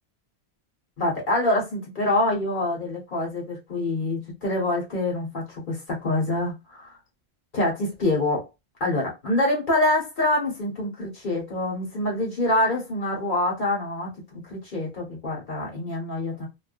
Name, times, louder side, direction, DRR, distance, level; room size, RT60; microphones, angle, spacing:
voice 1, 1.0-7.0 7.5-8.5 8.8-16.5, left 1 dB, 50° left, 1.1 m, -26 dB
2.3 x 2.2 x 2.4 m
omnidirectional pair, 1.1 m